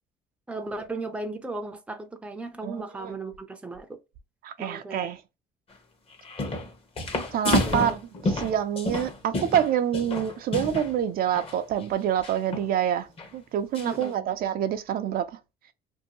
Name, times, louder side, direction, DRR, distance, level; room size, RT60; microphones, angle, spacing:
voice 1, 0.5-3.9 4.6-5.1 7.7-7.9 8.2-8.3 13.8-14.3, right 2 dB, 5° right, 0.5 m, -36 dB
voice 2, 2.6-3.2 4.4-5.2 7.3-8.0 8.3-13.1 13.3-15.4, right 10 dB, 60° right, 0.4 m, -27 dB
sound 1, 6.1-6.7 7.0-10.9 11.3-11.6 12.2-12.7 13.2-13.3 13.7-14.1, left 2 dB, 35° left, 0.9 m, -29 dB
2.6 x 2.6 x 2.9 m
cardioid pair, 110°, 17 cm